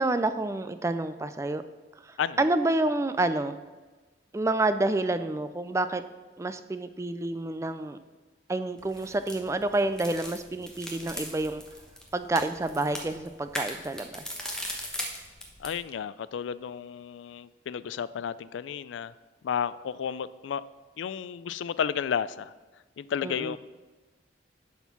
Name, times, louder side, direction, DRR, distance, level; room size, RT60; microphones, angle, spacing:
voice 1, 0.0-1.6 2.0-3.6 4.3-6.0 6.4-8.0 8.5-11.6 12.1-14.2 23.2-23.6, right 2 dB, 15° right, 11 dB, 0.3 m, -28 dB
sound 1, 8.8-15.8, equal, 5° left, 1.0 m, -39 dB
voice 2, 15.6-19.1 19.4-20.6 21.0-22.5 23.0-23.6, left 8 dB, 85° left, 17 dB, 0.3 m, -32 dB
10.5 x 4.4 x 5.9 m, 1.3 s
head